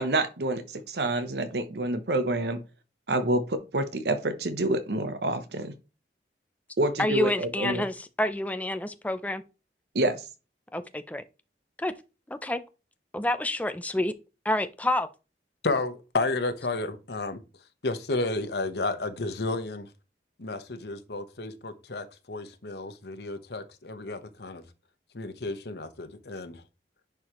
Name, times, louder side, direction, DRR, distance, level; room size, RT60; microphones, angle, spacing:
voice 1, 0.0-2.6 3.1-5.7 6.8-7.8 9.9-10.2, right 2 dB, 70° right, 0.9 m, -27 dB
voice 2, 7.0-9.4 10.7-11.2 11.8-11.9 12.3-12.6 13.1-14.1 14.4-15.1, left 1 dB, 10° left, 0.5 m, -28 dB
voice 3, 15.6-17.4 17.8-19.9 20.4-24.6 25.1-26.6, left 2 dB, 75° left, 1.1 m, -32 dB
10.5 x 4.8 x 3.0 m
head